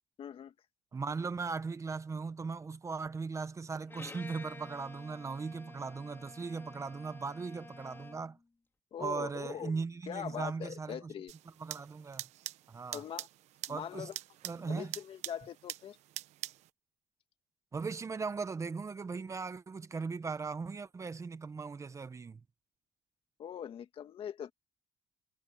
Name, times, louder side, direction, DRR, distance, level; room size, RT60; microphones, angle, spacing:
voice 1, 0.2-0.5 8.9-9.8 10.1-11.3 12.9-13.3 13.7-14.2 14.6-16.0 23.4-24.5, left 9 dB, 50° left, 2.2 m, -42 dB
voice 2, 0.9-8.4 9.0-11.1 11.6-12.2 12.7-13.0 13.7-14.1 14.4-14.9 17.7-22.4, right 4 dB, 25° right, 1.1 m, -38 dB
Bowed string instrument, 3.9-8.4, left 3 dB, 20° left, 4.0 m, -51 dB
sound 1, 11.3-16.7, right 14 dB, 70° right, 1.0 m, -45 dB
cardioid pair, 105°, 12 cm